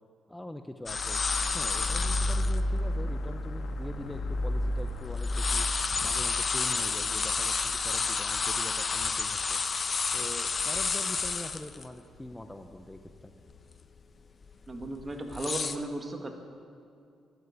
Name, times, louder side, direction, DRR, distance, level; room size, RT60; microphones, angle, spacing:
voice 1, 0.3-1.2 1.5-5.7 6.0-9.6 10.1-13.3, left 1 dB, 10° left, 7 dB, 0.7 m, -43 dB
sound 1, 0.9-9.2, left 1 dB, 60° left, 1.6 m, -33 dB
sound 2, 0.9-2.6 3.2-3.3 3.9-4.9 5.2-11.8 12.2-12.3 12.7-13.1 13.5-13.8 14.4-15.8, left 5 dB, 40° left, 0.8 m, -30 dB
voice 2, 14.7-16.3, right 2 dB, 25° right, 4 dB, 1.9 m, -35 dB
12.5 x 11.0 x 8.1 m, 2.5 s
cardioid pair, 90°, 0 cm